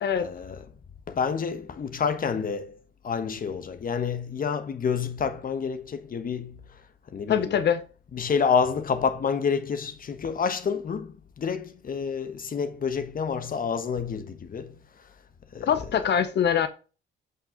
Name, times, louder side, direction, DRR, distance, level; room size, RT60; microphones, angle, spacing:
voice 1, 0.2-0.6 1.1-2.8 3.0-6.6 7.1-7.6 8.1-14.7 15.5-15.7, left 6 dB, 45° left, 1.2 m, -28 dB
voice 2, 7.3-7.8 15.6-16.7, left 8 dB, 60° left, 0.9 m, -23 dB
7.7 x 5.6 x 3.7 m
cardioid pair, 90°, 20 cm